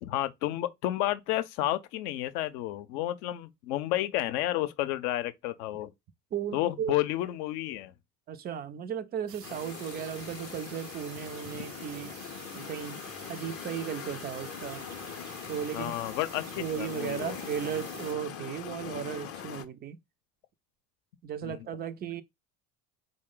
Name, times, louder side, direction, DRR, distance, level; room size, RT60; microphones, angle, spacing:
voice 1, 0.0-5.9 6.5-7.9 15.7-17.4 21.4-21.6, left 14 dB, 65° left, 0.7 m, -31 dB
voice 2, 6.3-7.0 8.3-12.1 12.5-13.0 13.3-14.9 15.5-16.0 16.6-20.0 21.2-22.2, right 9 dB, 25° right, 0.3 m, -36 dB
sound 1, 9.3-18.1, right 8 dB, 90° right, 0.6 m, -48 dB
sound 2, 9.4-19.6, left 8 dB, 30° left, 0.6 m, -42 dB
4.7 x 2.1 x 3.6 m
hypercardioid pair, 60°, 48 cm